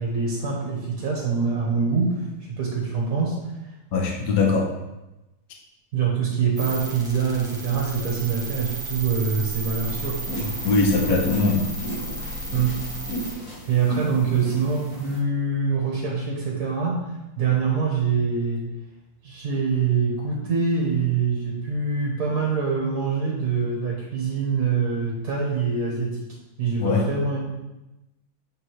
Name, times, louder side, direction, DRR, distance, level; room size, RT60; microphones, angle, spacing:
voice 1, 0.0-3.4 3.6-3.7 5.9-10.5 12.5-12.8 13.7-18.6 19.2-26.2 26.6-27.4, right 5 dB, 50° right, -3 dB, 1.2 m, -24 dB
voice 2, 3.9-4.7 10.6-11.7 26.8-27.1, left 3 dB, 55° left, 0 dB, 1.0 m, -21 dB
sound 1, 6.6-13.3, right 1 dB, 5° right, 0.7 m, -33 dB
sound 2, 9.8-15.2, right 1 dB, 40° left, 2.4 m, -35 dB
8.8 x 3.6 x 3.1 m, 0.98 s
omnidirectional pair, 2.3 m